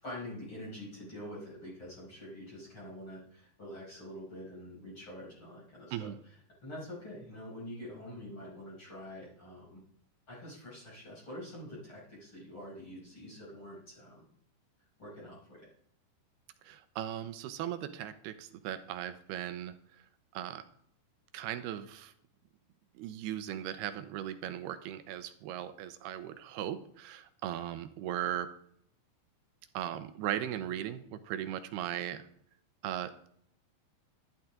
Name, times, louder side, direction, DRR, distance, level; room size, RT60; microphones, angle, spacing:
voice 1, 0.0-6.1 6.6-9.8 10.3-14.2 15.0-15.6, left 1 dB, 30° left, -6 dB, 6.4 m, -46 dB
voice 2, 16.6-19.7 20.3-20.7 21.3-22.1 23.0-28.5 29.7-32.2 32.8-33.3, right 11 dB, 75° right, 10 dB, 2.6 m, -38 dB
12.5 x 12.0 x 3.8 m, 0.66 s
omnidirectional pair, 5.1 m